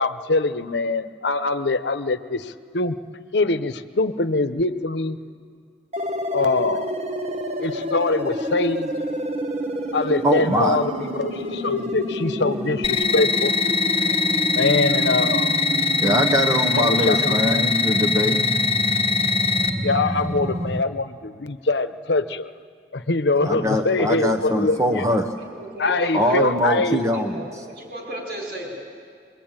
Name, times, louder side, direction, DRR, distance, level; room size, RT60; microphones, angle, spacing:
voice 1, 0.0-3.0 3.3-5.2 6.3-6.9 7.6-8.9 9.9-13.5 14.5-15.6 16.7-17.4 19.8-22.5 22.9-25.1 25.8-27.0, left 3 dB, 80° left, 11 dB, 0.9 m, -23 dB
sound 1, 5.9-20.8, equal, 40° right, 1.0 m, -28 dB
voice 2, 10.2-10.8 16.0-18.4 23.4-25.3 26.1-27.4, equal, 15° right, 5 dB, 0.9 m, -22 dB
sound 2, 12.8-19.7, left 4 dB, 30° left, 1.7 m, -22 dB
voice 3, 25.4-28.7, right 1 dB, 60° right, 0 dB, 4.5 m, -34 dB
24.0 x 21.5 x 8.9 m, 2.2 s
head